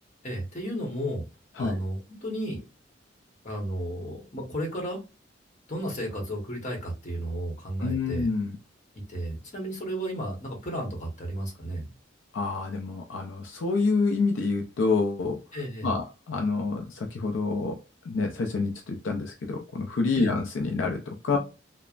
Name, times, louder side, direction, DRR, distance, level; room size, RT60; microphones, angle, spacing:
voice 1, 0.2-1.2 1.6-2.6 3.4-5.0 5.7-8.3 9.1-11.9 15.5-15.9 20.1-20.4 21.3-21.4, equal, 40° left, 1.0 m, -33 dB
voice 2, 7.8-8.6 12.3-15.4 15.8-17.8 18.1-21.4, left 4 dB, 75° left, 0.4 m, -27 dB
3.1 x 2.0 x 2.4 m
head